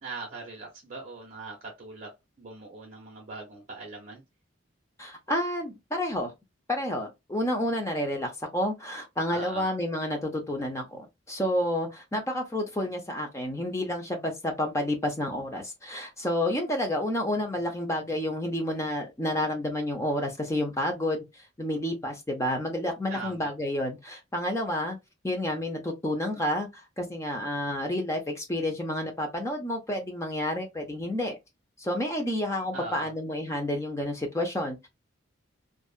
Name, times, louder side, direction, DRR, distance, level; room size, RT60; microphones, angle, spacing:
voice 1, 0.0-4.2 9.3-9.7 23.1-23.5 32.7-33.1, right 3 dB, 40° right, 0.7 m, -41 dB
voice 2, 5.0-6.3 6.7-25.0 25.2-31.4 31.8-34.9, left 1 dB, 15° left, 0.6 m, -30 dB
2.7 x 2.3 x 2.3 m
head